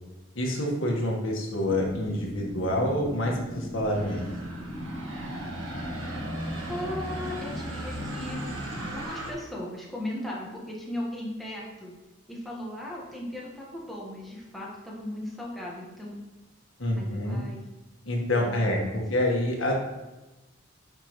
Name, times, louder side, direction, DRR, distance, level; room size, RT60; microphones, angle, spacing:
voice 1, 0.3-4.2 16.8-17.4 18.0-19.7, left 1 dB, 80° left, 0 dB, 1.6 m, -27 dB
sound 1, 1.6-9.1, equal, 20° left, 1.4 m, -39 dB
sound 2, 3.9-9.3, right 1 dB, 90° right, 1.7 m, -37 dB
voice 2, 6.7-8.4 8.9-11.9 12.3-16.1 17.0-17.6 18.4-19.0, left 1 dB, ahead, -5 dB, 1.4 m, -37 dB
9.8 x 5.4 x 3.1 m, 1.1 s
head